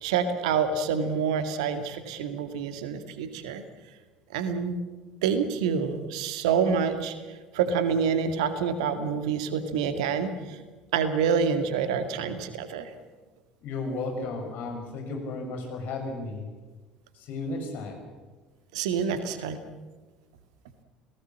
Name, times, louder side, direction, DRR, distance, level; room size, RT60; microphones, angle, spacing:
voice 1, 0.0-3.6 4.3-4.8 5.2-7.1 7.5-10.6 10.9-12.9 18.7-19.6, right 6 dB, 65° right, 9 dB, 2.1 m, -27 dB
voice 2, 13.6-16.5 17.1-18.0, left 3 dB, 50° left, 3 dB, 6.6 m, -34 dB
29.5 x 18.5 x 7.5 m, 1.3 s
figure-of-eight pair, 65°, 4 cm